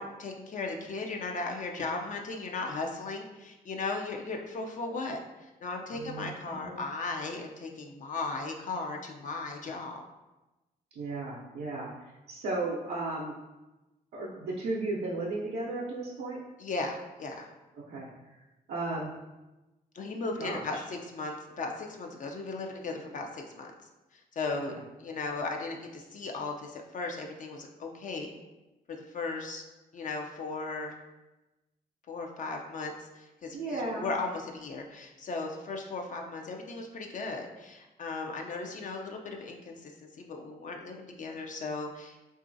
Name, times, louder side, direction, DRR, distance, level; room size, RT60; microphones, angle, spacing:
voice 1, 0.0-10.0 16.6-17.5 19.9-23.7 24.1-24.7 25.0-28.3 28.9-29.6 29.9-30.9 32.1-39.9 40.2-42.2, left 3 dB, 50° left, 2 dB, 0.4 m, -36 dB
voice 2, 5.9-6.8 11.0-13.4 14.1-16.4 17.9-18.4 18.7-19.1 20.4-20.8 24.7-24.8 33.5-34.1, right 2 dB, 80° right, -5 dB, 0.5 m, -35 dB
2.9 x 2.4 x 2.6 m, 1.1 s
supercardioid pair, 60°, 17 cm